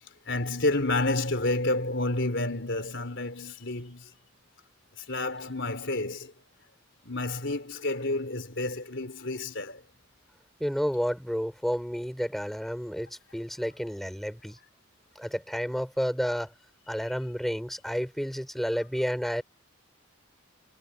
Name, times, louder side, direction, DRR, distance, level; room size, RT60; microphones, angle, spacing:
voice 1, 0.3-4.0 5.1-6.3 7.0-9.8, left 2 dB, 65° left, 4.0 m, -29 dB
voice 2, 10.6-14.6 15.2-16.5 16.9-19.4, equal, ahead, 5.2 m, -31 dB
head